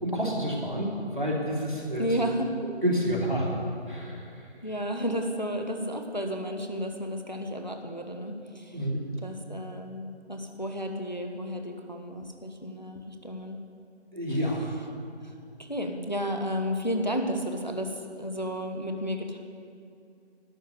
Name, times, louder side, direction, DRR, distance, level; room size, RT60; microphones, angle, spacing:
voice 1, 0.0-2.0 2.6-3.5 3.9-4.3 8.7-9.2 14.1-14.7, equal, 45° right, -3 dB, 2.7 m, -29 dB
voice 2, 2.0-2.6 4.6-8.9 9.2-13.6 14.3-14.4 15.2-19.4, equal, 40° left, 4 dB, 1.0 m, -32 dB
12.0 x 7.3 x 8.3 m, 2.6 s
figure-of-eight pair, 180°, 34 cm